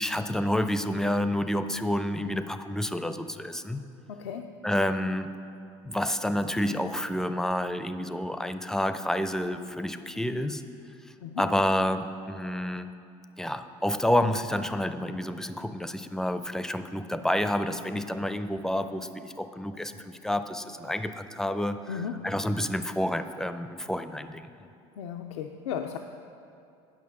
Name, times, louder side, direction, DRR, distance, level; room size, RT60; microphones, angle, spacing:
voice 1, 0.0-3.8 4.6-5.3 5.8-10.6 11.4-12.9 13.4-24.5, left 1 dB, 5° left, 10 dB, 0.4 m, -29 dB
voice 2, 4.1-4.6 11.2-11.4 21.9-22.3 25.0-26.0, left 8 dB, 90° left, 4 dB, 0.4 m, -35 dB
9.4 x 5.9 x 6.0 m, 2.5 s
supercardioid pair, 85°, 15 cm